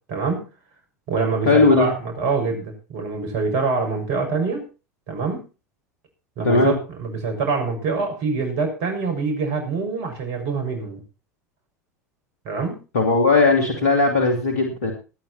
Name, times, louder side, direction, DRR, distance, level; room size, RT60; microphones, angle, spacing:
voice 1, 0.1-0.4 1.1-4.6 5.1-5.4 6.4-11.0 12.4-12.8, right 4 dB, 60° right, 4 dB, 6.7 m, -25 dB
voice 2, 1.5-1.9 6.4-6.7 12.9-14.9, left 3 dB, 75° left, 3 dB, 3.1 m, -17 dB
19.0 x 9.7 x 4.4 m, 0.33 s
figure-of-eight pair, 75°, 9 cm